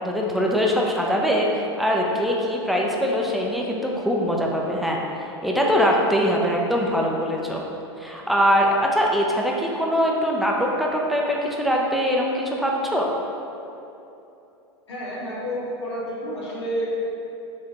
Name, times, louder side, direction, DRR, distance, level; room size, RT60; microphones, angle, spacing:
voice 1, 0.0-5.0 5.4-7.6 8.0-13.1, equal, ahead, -2 dB, 0.5 m, -22 dB
voice 2, 14.9-16.9, equal, 85° left, -7 dB, 1.1 m, -30 dB
4.8 x 3.3 x 2.9 m, 2.9 s
hypercardioid pair, 100°, 14 cm